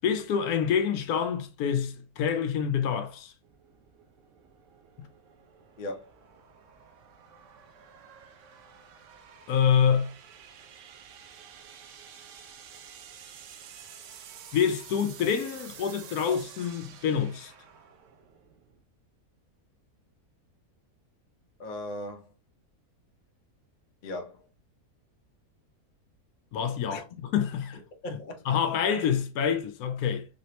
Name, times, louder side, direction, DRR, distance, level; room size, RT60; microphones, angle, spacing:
voice 1, 0.0-3.3 9.5-10.1 14.5-17.5 26.5-27.8 28.5-30.3, left 7 dB, 80° left, 1.1 m, -27 dB
sound 1, 3.4-18.8, right 8 dB, 65° right, 0.8 m, -50 dB
voice 2, 5.8-6.1 21.6-22.3 24.0-24.5 26.9-27.0 27.7-28.5, left 1 dB, 45° left, 0.7 m, -38 dB
3.2 x 2.9 x 3.0 m
omnidirectional pair, 1.6 m